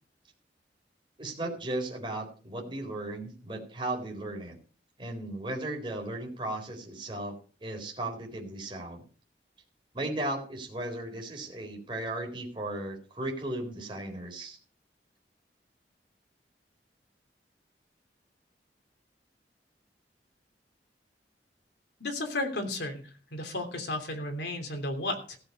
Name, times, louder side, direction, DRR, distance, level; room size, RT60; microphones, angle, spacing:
voice 1, 1.2-4.6 5.0-7.4 7.6-9.0 9.9-14.6, right 1 dB, 30° right, 1 dB, 4.0 m, -36 dB
voice 2, 22.0-23.0 23.3-25.4, left 2 dB, 75° left, 5 dB, 3.2 m, -33 dB
15.5 x 7.5 x 5.4 m, 0.39 s
head